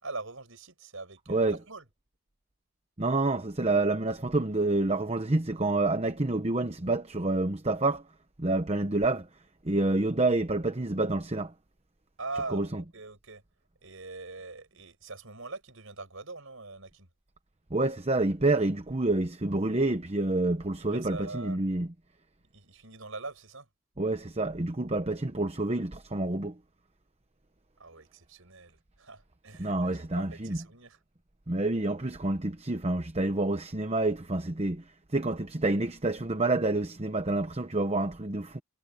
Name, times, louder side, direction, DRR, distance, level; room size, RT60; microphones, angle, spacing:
voice 1, 0.0-1.8 12.2-13.4 13.8-17.1 20.9-21.6 22.5-23.7 27.8-31.0, right 3 dB, 65° right, 5.6 m, -42 dB
voice 2, 1.3-1.6 3.0-8.0 8.4-9.3 9.6-11.5 12.5-12.8 17.7-21.9 24.0-26.6 29.6-30.6 31.5-38.6, right 2 dB, 30° right, 0.9 m, -28 dB
head